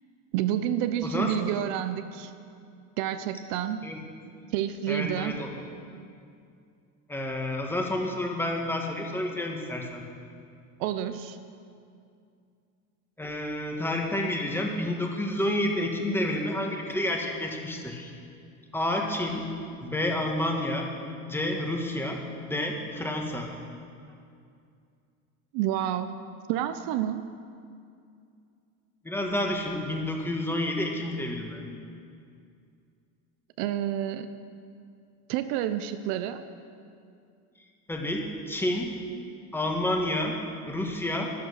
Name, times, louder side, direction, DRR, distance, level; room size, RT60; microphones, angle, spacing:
voice 1, 0.3-2.3 3.0-3.8 4.5-5.4 10.8-11.4 25.5-26.1 26.5-27.3 33.6-34.3 35.3-36.4, right 11 dB, 70° right, 10 dB, 0.7 m, -29 dB
voice 2, 1.0-1.3 3.8-4.0 4.9-5.5 7.1-10.1 13.2-18.1 18.7-19.5 19.8-20.9 21.3-22.2 22.5-23.5 29.0-31.6 37.9-38.9 39.5-40.4 40.7-41.3, left 1 dB, 5° left, 1 dB, 1.5 m, -29 dB
12.5 x 10.5 x 6.5 m, 2.4 s
cardioid pair, 135°, 35 cm